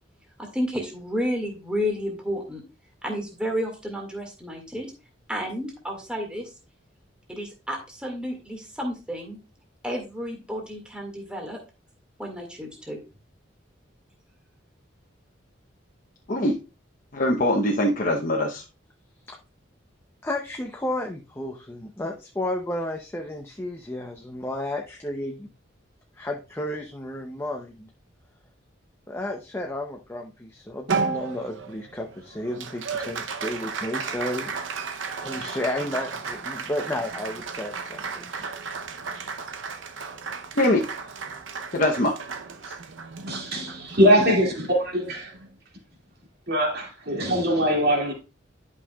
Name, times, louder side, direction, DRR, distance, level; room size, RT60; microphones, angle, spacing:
voice 1, 0.4-2.6 3.0-4.9 5.3-6.5 7.3-9.4 9.8-11.6 12.2-13.0, equal, 5° right, 1.9 m, -31 dB
voice 2, 17.1-18.6 40.6-40.8 41.7-42.2 42.7-42.8, left 1 dB, 45° left, 0.9 m, -22 dB
voice 3, 20.2-25.5 26.2-27.9 29.1-34.5 35.2-38.3, left 1 dB, 15° left, 0.6 m, -32 dB
Applause, 30.9-45.5, right 5 dB, 80° right, 0.7 m, -34 dB
voice 4, 43.3-45.3 46.5-48.1, equal, 55° right, 2.3 m, -22 dB
11.5 x 5.5 x 2.3 m
head